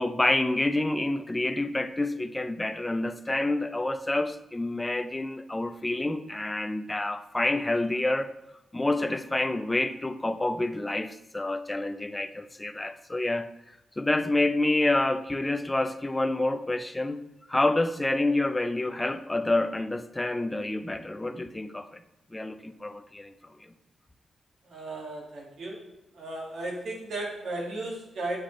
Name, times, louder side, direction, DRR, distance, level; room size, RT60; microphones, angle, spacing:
voice 1, 0.0-8.3 8.7-13.5 14.0-17.2 17.5-22.0 22.3-23.3 23.6-23.7, left 2 dB, 15° left, 9 dB, 0.5 m, -28 dB
voice 2, 24.7-25.8 26.1-28.4, right 2 dB, 75° right, -1 dB, 2.1 m, -35 dB
8.1 x 6.1 x 3.2 m, 0.91 s
cardioid pair, 105°, 0 cm